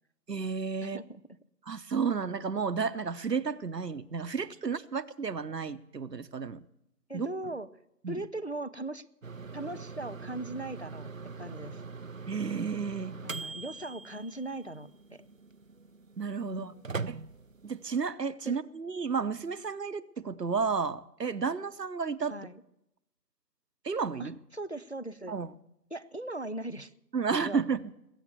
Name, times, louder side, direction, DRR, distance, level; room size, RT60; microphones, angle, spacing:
voice 1, 0.3-1.0 1.7-6.6 7.1-7.3 8.0-8.2 12.3-13.2 16.2-16.7 17.1-17.2 17.6-22.3 23.8-24.3 25.3-25.5 27.1-27.9, right 5 dB, 75° right, 14 dB, 0.9 m, -32 dB
voice 2, 0.8-1.2 7.1-7.7 8.1-9.0 9.5-11.1 11.4-11.8 13.2-15.3 16.4-16.8 18.5-18.6 22.3-22.6 24.2-25.3 25.9-26.9 27.4-27.6, right 2 dB, 45° left, 13 dB, 0.4 m, -39 dB
sound 1, 9.2-17.9, right 4 dB, 55° right, 0.5 m, -42 dB
21.0 x 8.7 x 6.8 m, 0.84 s
figure-of-eight pair, 160°, 49 cm